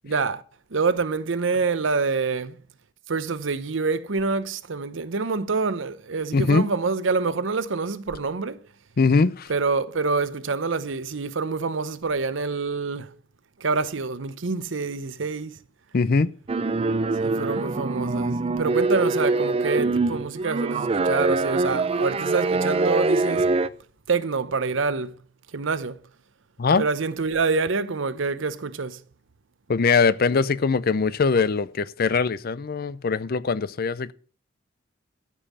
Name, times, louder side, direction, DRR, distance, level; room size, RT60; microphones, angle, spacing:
voice 1, 0.0-0.4 0.7-2.6 3.1-8.6 9.5-13.1 13.6-15.6 17.2-23.5 24.1-25.2 25.5-26.0 26.8-29.0, right 4 dB, 75° right, 0.8 m, -26 dB
voice 2, 6.3-6.7 9.0-9.5 15.9-16.3 26.6-26.9 29.7-34.1, left 4 dB, 50° left, 0.5 m, -21 dB
sound 1, 16.5-23.7, right 3 dB, 30° right, 0.4 m, -24 dB
12.5 x 5.5 x 7.2 m
head